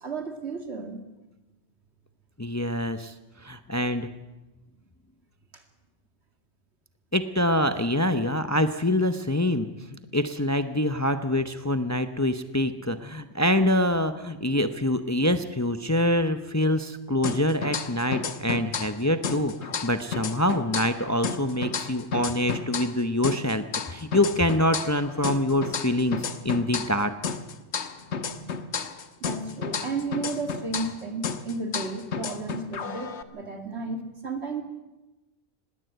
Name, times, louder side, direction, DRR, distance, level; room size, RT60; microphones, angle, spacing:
voice 1, 0.0-1.0 5.5-5.6 27.6-27.7 28.0-28.8 29.2-34.6, right 3 dB, 70° right, 5 dB, 2.6 m, -33 dB
voice 2, 2.4-3.1 3.4-4.1 7.1-27.1, left 1 dB, 15° left, 9 dB, 0.7 m, -25 dB
sound 1, 17.2-19.0 19.2-23.0 23.2-27.0 27.2-31.0 31.2-33.2, left 6 dB, 80° left, 1.4 m, -32 dB
20.0 x 17.0 x 8.0 m, 1.1 s
omnidirectional pair, 1.2 m